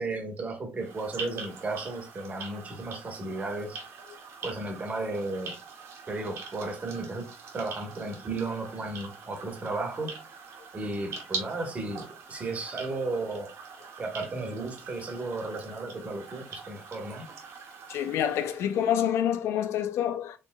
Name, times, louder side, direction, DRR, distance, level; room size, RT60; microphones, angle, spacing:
voice 1, 0.0-3.8 4.4-5.5 6.1-7.2 7.5-10.1 10.7-13.5 14.0-17.3, right 2 dB, 30° right, 1.3 m, -34 dB
sound 1, 0.7-19.2, right 5 dB, 85° right, 1.7 m, -43 dB
voice 2, 17.9-20.4, left 10 dB, 75° left, 0.5 m, -27 dB
5.1 x 3.2 x 2.2 m
cardioid pair, 120°, 5 cm